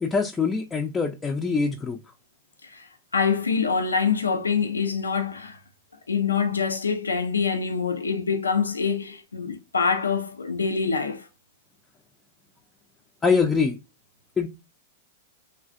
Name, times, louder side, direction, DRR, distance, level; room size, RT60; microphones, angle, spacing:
voice 1, 0.0-2.0 13.2-13.8 14.4-14.5, left 5 dB, 15° left, 0.4 m, -24 dB
voice 2, 2.6-5.6 6.1-11.3, left 5 dB, 90° left, 0.3 m, -25 dB
3.3 x 2.4 x 2.4 m
hypercardioid pair, 100°, 0 cm